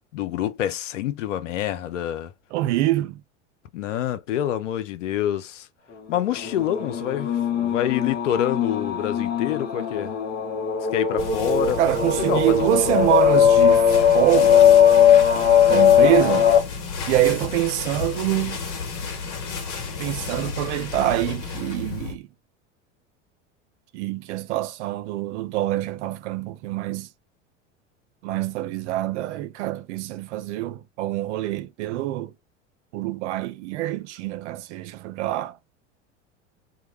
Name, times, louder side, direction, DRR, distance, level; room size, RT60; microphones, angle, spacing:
voice 1, 0.1-2.3 3.7-5.7 6.1-10.1 10.9-13.0, left 11 dB, 80° left, 0.5 m, -27 dB
voice 2, 2.5-3.2 11.8-14.7 15.7-16.5 17.1-18.6 20.0-22.3 23.9-27.1 28.2-32.3 32.9-35.6, right 15 dB, 70° right, 0.5 m, -25 dB
sound 1, 6.3-16.6, left 8 dB, 25° left, 0.8 m, -19 dB
sound 2, 11.2-22.2, left 5 dB, 50° left, 1.1 m, -33 dB
2.2 x 2.1 x 2.9 m
hypercardioid pair, 80°, 36 cm